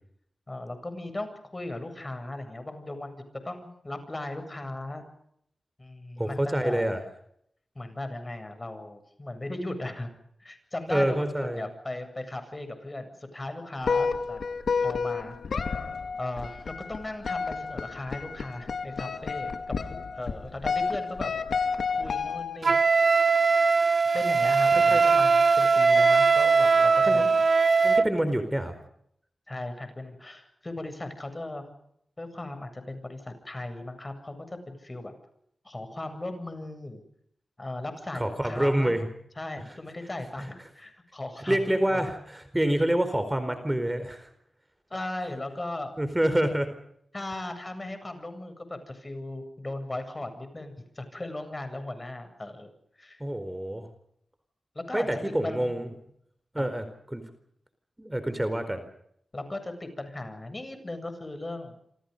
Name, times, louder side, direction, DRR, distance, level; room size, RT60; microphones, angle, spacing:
voice 1, 0.5-5.0 5.8-6.9 7.7-10.1 10.4-14.4 14.8-15.4 16.2-21.3 22.0-23.1 24.1-27.4 29.5-31.7 32.2-35.1 35.6-37.0 37.6-39.0 39.4-42.1 44.9-45.9 47.1-52.7 53.0-53.2 54.7-55.7 56.6-56.7 59.3-61.7, left 2 dB, 30° left, 9 dB, 8.0 m, -37 dB
voice 2, 6.2-7.0 10.9-11.6 24.7-25.0 27.0-27.2 27.8-28.7 38.1-39.1 40.4-40.5 41.5-44.3 46.0-46.7 53.2-53.9 54.9-55.9 56.5-57.2 58.0-58.8, right 1 dB, 15° right, 10 dB, 4.4 m, -27 dB
sound 1, 13.8-22.8, left 5 dB, 80° left, 2.3 m, -30 dB
Wind instrument woodwind instrument, 22.6-28.1, right 4 dB, 60° right, 1.0 m, -20 dB
28.0 x 26.5 x 5.4 m, 0.72 s
cardioid pair, 55°, 0 cm